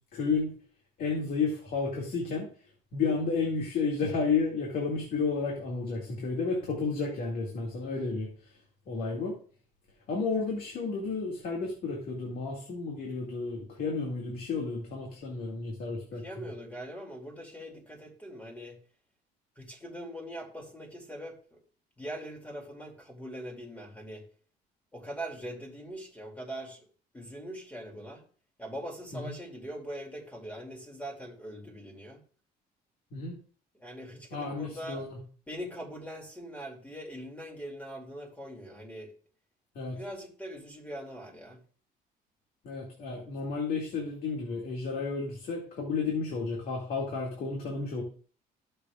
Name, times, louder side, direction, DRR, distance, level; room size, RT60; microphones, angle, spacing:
voice 1, 0.1-0.5 1.0-2.5 2.9-8.6 8.9-9.4 10.1-16.5 29.1-29.3 33.1-33.3 34.3-35.2 39.7-40.0 42.6-48.0, left 4 dB, 60° left, 0 dB, 2.2 m, -32 dB
voice 2, 16.2-18.8 19.6-21.6 22.0-24.2 24.9-26.9 27.1-28.2 28.6-32.2 33.7-35.1 35.5-39.1 39.9-41.6, equal, 10° left, 2 dB, 2.5 m, -42 dB
14.0 x 6.7 x 2.4 m, 0.42 s
cardioid pair, 110°, 17 cm